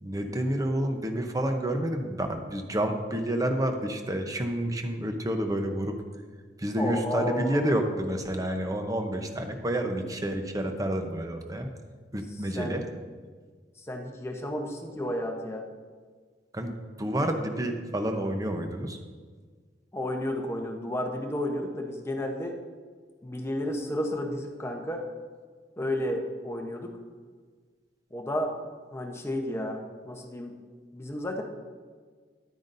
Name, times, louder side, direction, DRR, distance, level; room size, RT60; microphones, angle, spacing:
voice 1, 0.0-6.0 6.6-11.7 12.1-12.8 16.5-19.0, right 1 dB, 20° right, 5 dB, 0.8 m, -29 dB
voice 2, 6.8-7.8 12.6-12.8 13.8-15.6 19.9-22.6 23.2-25.1 25.8-26.9 28.1-28.6 28.9-30.6 30.9-31.4, left 1 dB, 15° left, 2 dB, 0.9 m, -32 dB
10.5 x 9.4 x 2.6 m, 1.6 s
head